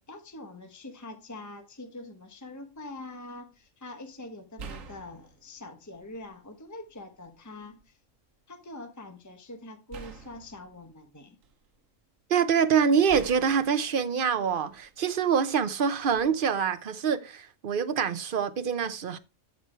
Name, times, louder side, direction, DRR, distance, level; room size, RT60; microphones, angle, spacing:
voice 1, 0.0-8.0 8.5-11.4, left 2 dB, 15° left, 1.2 m, -44 dB
sound 1, 2.7-3.0 4.6-6.4 6.9-7.8 9.9-11.9 13.1-15.0 16.0-16.3, right 5 dB, 90° right, 1.4 m, -47 dB
voice 2, 12.3-19.2, right 7 dB, 50° right, 0.9 m, -25 dB
12.5 x 4.9 x 4.5 m
omnidirectional pair, 1.3 m